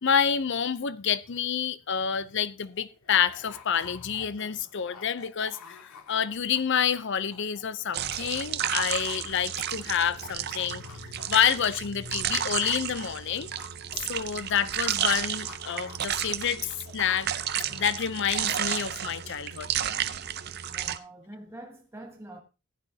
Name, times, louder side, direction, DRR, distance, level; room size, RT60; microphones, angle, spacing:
voice 1, 0.0-13.5 14.1-17.3 17.7-19.7, left 8 dB, 50° left, 0.5 m, -28 dB
sound 1, 2.4-7.9 8.2-11.7 12.1-15.1 15.5-18.2, left 4 dB, 85° left, 2.1 m, -49 dB
sound 2, 7.9-21.0, right 10 dB, 45° right, 0.6 m, -32 dB
voice 2, 20.6-22.4, right 1 dB, 10° right, 0.9 m, -45 dB
15.5 x 10.0 x 2.7 m
head